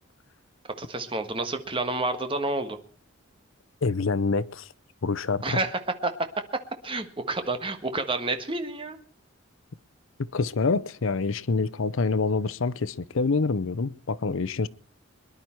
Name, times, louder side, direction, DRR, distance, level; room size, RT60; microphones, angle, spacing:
voice 1, 0.8-2.8 5.4-6.1 6.8-9.0, right 2 dB, 25° right, 1.4 m, -29 dB
voice 2, 3.8-4.7 5.0-5.6 10.2-14.7, left 4 dB, 75° left, 0.6 m, -26 dB
23.0 x 11.0 x 4.5 m
head